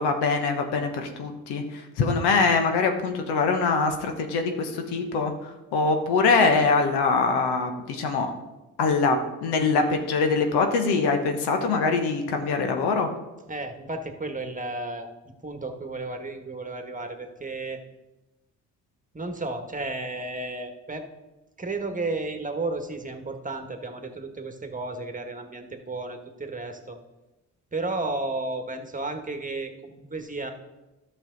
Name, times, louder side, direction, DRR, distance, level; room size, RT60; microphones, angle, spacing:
voice 1, 0.0-8.3 8.8-13.1, left 4 dB, 80° left, 5 dB, 1.3 m, -23 dB
voice 2, 13.5-17.8 19.1-21.0 21.6-27.0 27.7-30.5, right 2 dB, 20° right, 5 dB, 1.6 m, -33 dB
11.5 x 6.6 x 4.0 m, 1.0 s
supercardioid pair, 50°, 39 cm